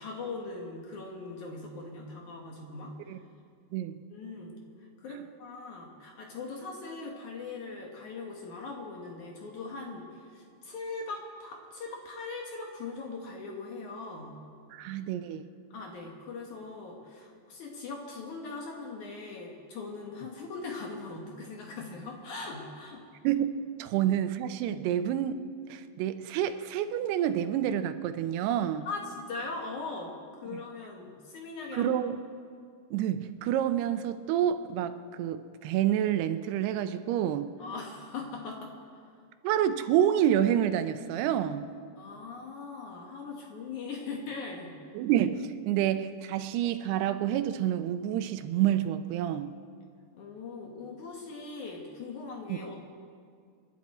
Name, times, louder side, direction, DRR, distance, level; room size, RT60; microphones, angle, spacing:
voice 1, 0.0-2.9 4.1-4.6 5.0-14.4 15.7-23.0 28.9-31.9 37.6-39.0 42.0-44.7 50.1-52.8, left 3 dB, 60° left, 0 dB, 2.4 m, -40 dB
voice 2, 14.7-15.5 23.2-23.5 23.8-28.9 30.5-30.6 31.7-32.2 32.9-37.5 39.4-41.7 44.9-49.5 52.5-52.6, right 10 dB, 85° right, 10 dB, 2.6 m, -28 dB
27.5 x 11.5 x 4.3 m, 2.2 s
omnidirectional pair, 4.7 m